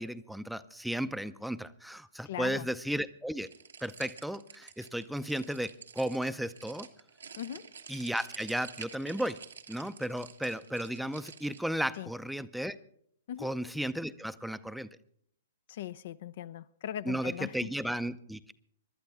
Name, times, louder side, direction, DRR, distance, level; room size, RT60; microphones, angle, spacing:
voice 1, 0.0-3.5 3.8-6.9 7.9-9.4 9.7-12.8 13.4-14.9 17.1-18.5, right 1 dB, ahead, 0.5 m, -34 dB
voice 2, 2.3-2.7 7.4-7.6 12.0-12.1 13.3-13.5 15.7-17.7, left 11 dB, 55° left, 0.5 m, -39 dB
sound 1, 3.4-11.6, right 6 dB, 85° right, 1.4 m, -49 dB
26.0 x 12.0 x 3.6 m
hypercardioid pair, 120°, 0 cm